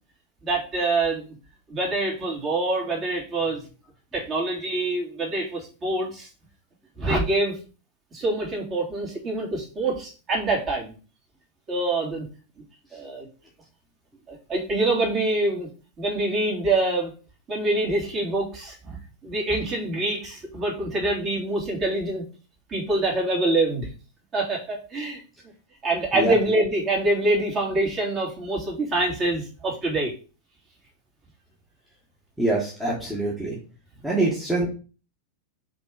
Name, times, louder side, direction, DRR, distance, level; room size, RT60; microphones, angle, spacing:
voice 1, 0.4-1.3 1.7-3.6 4.1-6.3 7.0-7.6 8.1-11.0 11.7-12.3 12.9-13.3 14.3-15.7 16.0-17.1 17.5-22.3 22.7-23.9 24.3-25.2 25.8-30.1, right 2 dB, 30° right, -3 dB, 2.9 m, -25 dB
voice 2, 32.4-33.6 34.0-34.7, right 2 dB, 5° right, -5 dB, 1.8 m, -24 dB
5.1 x 3.8 x 5.0 m, 0.35 s
figure-of-eight pair, 90°, 0 cm